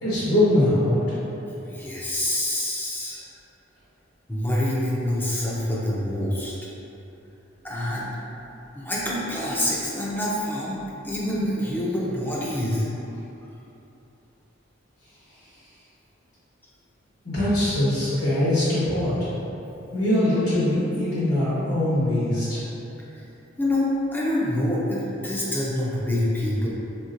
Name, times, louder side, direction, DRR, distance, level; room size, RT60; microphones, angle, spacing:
voice 1, 0.0-1.0 17.2-19.3 19.9-22.6, left 1 dB, 60° left, -13 dB, 1.2 m, -22 dB
voice 2, 1.6-3.2 4.3-6.5 7.6-8.1 8.7-12.9 23.6-26.7, left 1 dB, 10° left, -6 dB, 0.5 m, -26 dB
3.7 x 2.8 x 2.5 m, 2.9 s
head